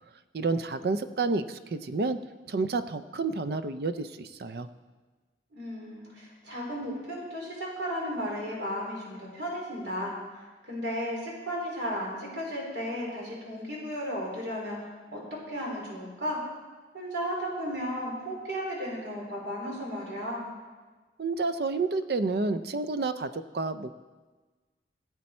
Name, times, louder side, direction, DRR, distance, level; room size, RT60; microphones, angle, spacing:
voice 1, 0.3-2.2 2.5-4.7 21.2-23.9, right 3 dB, 60° right, 12 dB, 0.5 m, -30 dB
voice 2, 5.5-10.2 10.6-14.8 15.1-15.2 15.5-16.4 16.9-20.5, equal, 85° right, -3 dB, 3.8 m, -34 dB
16.5 x 8.2 x 4.3 m, 1.3 s
head